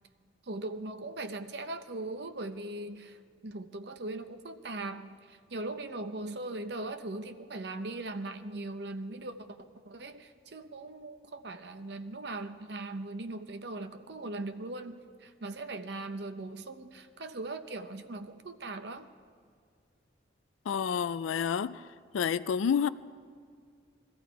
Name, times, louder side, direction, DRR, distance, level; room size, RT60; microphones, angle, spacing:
voice 1, 0.5-3.2 3.4-9.3 9.9-19.1, right 2 dB, 55° right, 0.7 m, -39 dB
voice 2, 20.7-21.8 22.1-22.9, left 7 dB, 90° left, 0.4 m, -29 dB
21.5 x 14.0 x 4.7 m
head